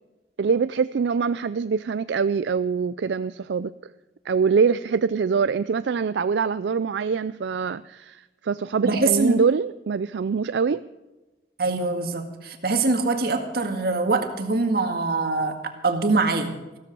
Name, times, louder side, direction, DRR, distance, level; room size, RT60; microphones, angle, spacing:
voice 1, 0.4-3.9 4.3-10.8, right 5 dB, 80° right, 14 dB, 0.4 m, -24 dB
voice 2, 8.8-9.4 11.6-15.6 15.8-16.5, right 3 dB, 60° right, 5 dB, 1.9 m, -23 dB
15.5 x 14.0 x 5.3 m, 1.1 s
head